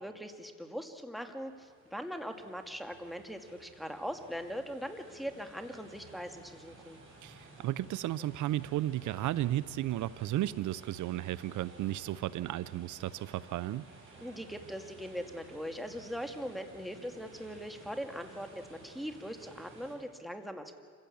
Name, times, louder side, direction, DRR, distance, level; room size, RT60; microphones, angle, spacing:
voice 1, 0.0-7.0 14.2-20.7, equal, ahead, 6 dB, 2.1 m, -41 dB
sound 1, 0.9-19.9, right 3 dB, 45° right, 7.0 m, -55 dB
voice 2, 7.2-13.9, right 14 dB, 75° right, 18 dB, 0.6 m, -34 dB
26.5 x 16.0 x 8.5 m, 2.2 s
cardioid pair, 90°, 30 cm